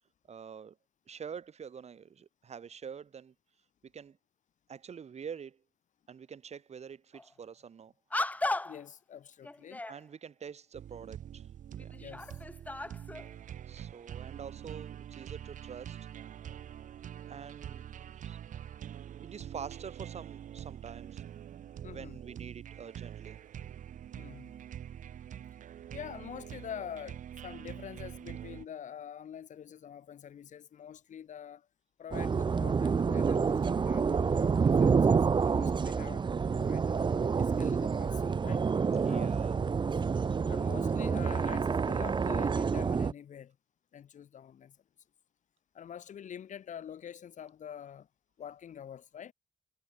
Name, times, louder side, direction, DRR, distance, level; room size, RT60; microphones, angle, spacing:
voice 1, 0.3-0.8 1.1-3.3 3.8-4.2 4.7-5.6 6.1-7.9 9.9-11.5 11.8-12.0 13.7-16.1 17.3-17.9 18.1-18.4 19.2-21.2 21.8-23.4 39.0-39.6, right 7 dB, 55° right, 5.2 m, -46 dB
sound 1, 7.1-7.3 8.1-8.9 9.4-10.0 11.0-11.1 11.7-13.3, left 2 dB, 10° left, 0.6 m, -36 dB
voice 2, 8.6-9.8 12.0-12.4 21.8-22.2 24.1-24.5 25.9-31.7 32.0-37.0 37.4-38.6 39.0-39.5 40.5-43.6 43.9-44.8 45.7-48.1 48.4-49.3, left 9 dB, 70° left, 1.5 m, -46 dB
sound 2, 10.7-28.6, right 10 dB, 75° right, 1.0 m, -45 dB
sound 3, 32.1-43.1, right 5 dB, 35° right, 0.9 m, -28 dB
wide cardioid pair, 120°, 13 cm